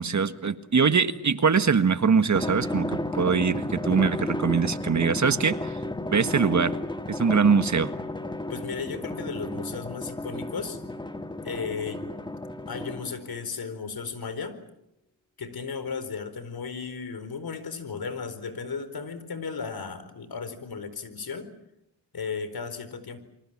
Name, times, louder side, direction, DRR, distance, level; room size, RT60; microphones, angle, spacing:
voice 1, 0.0-5.7 6.1-6.8 7.1-7.9, right 5 dB, 35° right, 11 dB, 1.6 m, -23 dB
Drum, 2.3-13.3, left 1 dB, 10° left, 1.5 m, -33 dB
voice 2, 8.5-10.8 11.4-12.1 12.7-14.6 15.4-21.5 22.1-23.2, left 5 dB, 50° left, 12 dB, 4.5 m, -35 dB
28.0 x 24.5 x 7.4 m, 0.85 s
cardioid pair, 75°, 47 cm